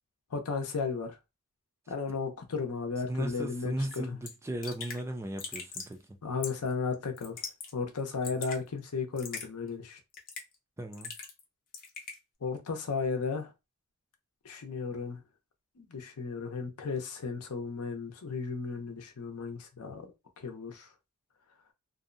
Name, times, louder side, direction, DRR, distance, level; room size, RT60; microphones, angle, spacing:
voice 1, 0.3-1.2 1.9-3.7 4.1-4.2 6.2-7.4 7.7-10.0 12.4-13.5 14.4-15.2 15.8-20.1 20.4-20.9, left 5 dB, 80° left, 0.6 m, -34 dB
voice 2, 3.1-6.0 10.8-11.1, right 1 dB, 10° right, 0.3 m, -36 dB
Raindrop / Drip, 3.9-4.0 4.3-4.4 4.6-5.0 5.4-5.9 6.4-6.7 7.2-7.7 8.0-8.6 9.2-9.5 10.1-10.6 10.9-11.4 11.7-12.2, left 5 dB, 40° left, 0.6 m, -40 dB
2.6 x 2.0 x 2.5 m
head